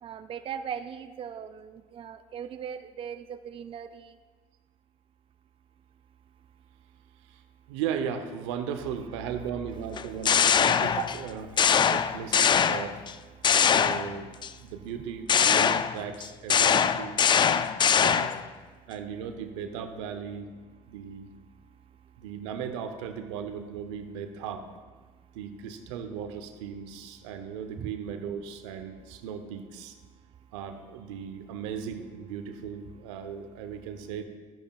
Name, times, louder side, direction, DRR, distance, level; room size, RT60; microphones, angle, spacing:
voice 1, 0.0-4.1 13.4-13.8 27.8-27.9, right 8 dB, 40° right, 10 dB, 0.5 m, -39 dB
voice 2, 7.7-13.0 13.7-14.3 14.6-18.3 18.9-20.5 20.9-21.3 22.2-24.7 25.3-30.0 30.5-34.2, right 7 dB, 85° right, 7 dB, 0.8 m, -37 dB
sound 1, 10.0-11.2 11.6-13.1 13.4-14.5 15.3-18.5, left 7 dB, 30° left, 0.4 m, -23 dB
12.5 x 10.0 x 2.4 m, 1.4 s
supercardioid pair, 75°, 15 cm